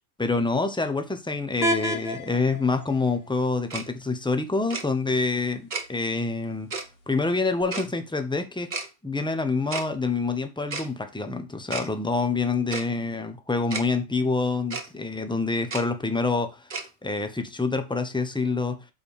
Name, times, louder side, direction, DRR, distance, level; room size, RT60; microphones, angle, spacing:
voice 1, 0.2-6.7 7.1-8.7 9.0-16.7 17.0-18.9, left 3 dB, 5° left, 0.7 m, -26 dB
sound 1, 1.6-7.6, equal, 50° left, 1.4 m, -35 dB
Tick-tock, 3.7-3.8 4.7-4.8 5.7-5.8 6.7-6.8 7.7-7.9 8.7-8.9 9.7-9.9 10.7-10.9 11.7-11.9 12.7-12.8 13.7-13.8 14.7-14.9 15.7-15.8 16.7-16.9, right 3 dB, 40° right, 1.4 m, -32 dB
6.7 x 4.5 x 5.3 m
omnidirectional pair, 1.3 m